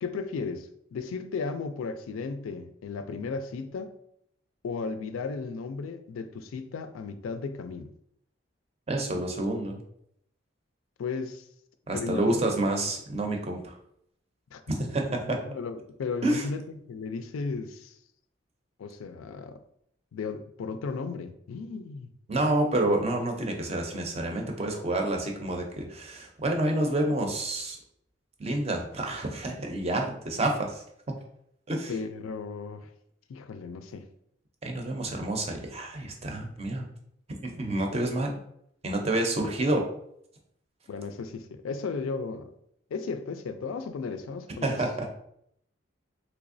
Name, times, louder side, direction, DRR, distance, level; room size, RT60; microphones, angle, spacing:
voice 1, 0.0-3.9 4.6-7.9 11.0-11.5 11.9-12.4 12.7-12.9 14.5-14.6 15.3-18.0 18.8-19.6 20.1-22.1 31.9-32.9 33.3-34.1 40.9-42.5 42.9-44.8, left 4 dB, 85° left, 0.3 m, -35 dB
voice 2, 8.9-9.8 11.9-13.8 14.7-15.4 16.2-16.5 22.3-27.8 28.4-30.8 31.7-31.9 34.6-36.9 37.3-38.3 38.8-39.8 44.6-45.1, right 1 dB, 30° right, 0.5 m, -28 dB
3.3 x 3.0 x 2.5 m
head